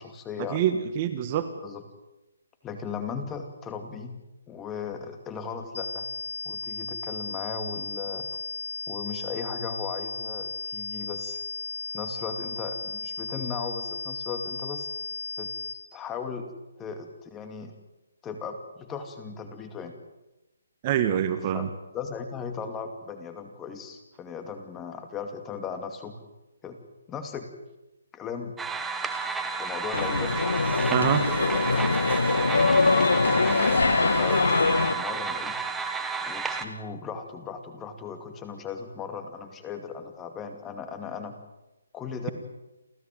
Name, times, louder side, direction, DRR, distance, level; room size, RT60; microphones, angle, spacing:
voice 1, 0.0-0.6 1.6-1.8 2.6-4.2 4.5-6.1 6.4-8.3 8.9-11.4 11.9-14.9 15.4-15.5 15.9-16.5 16.8-17.7 18.2-20.0 21.5-21.7 21.9-26.2 26.6-26.8 27.1-27.5 28.1-28.5 29.6-30.4 30.9-31.6 33.4-35.6 36.2-41.4 41.9-42.3, left 6 dB, 10° left, 7 dB, 2.4 m, -37 dB
voice 2, 0.5-1.5 20.8-21.7 30.9-31.3, right 10 dB, 30° right, 10 dB, 1.6 m, -25 dB
sound 1, 5.7-15.7, left 3 dB, 65° left, 6.4 m, -35 dB
sound 2, 28.6-36.6, right 5 dB, 5° right, 1.4 m, -31 dB
sound 3, 29.9-34.9, left 3 dB, 90° left, 1.8 m, -23 dB
30.0 x 13.5 x 9.2 m, 0.98 s
hypercardioid pair, 160°, 0 cm